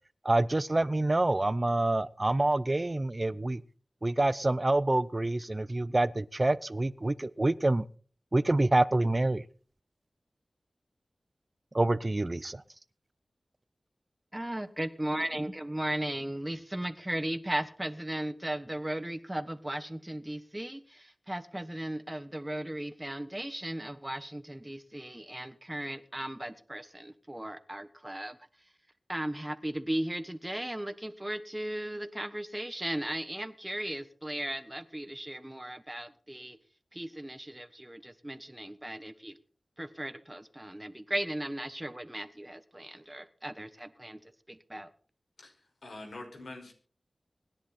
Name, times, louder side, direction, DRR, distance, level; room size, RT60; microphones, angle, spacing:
voice 1, 0.2-3.6 4.0-7.8 8.3-9.4 11.7-12.6, right 2 dB, 35° right, 18 dB, 0.7 m, -27 dB
voice 2, 14.3-28.4 29.1-36.6 36.9-39.4 39.8-44.2 44.5-44.9, right 1 dB, 15° right, 11 dB, 1.4 m, -36 dB
voice 3, 45.8-46.7, left 2 dB, 90° left, 2 dB, 5.2 m, -45 dB
25.5 x 10.5 x 4.3 m, 0.42 s
wide cardioid pair, 65°, 0 cm